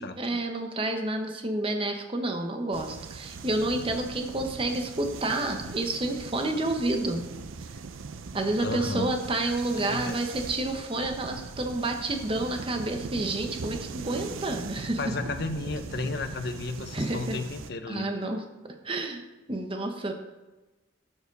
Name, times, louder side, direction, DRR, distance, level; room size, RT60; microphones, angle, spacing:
voice 1, 0.0-7.2 8.3-15.0 16.9-17.3 17.9-20.1, right 2 dB, 25° right, 4 dB, 0.9 m, -29 dB
sound 1, 2.7-17.7, right 4 dB, 75° right, 0.5 m, -40 dB
voice 2, 8.6-9.2 9.4-10.2 15.0-18.1, left 3 dB, 50° left, 8 dB, 0.7 m, -33 dB
11.0 x 5.1 x 5.3 m, 1.2 s
head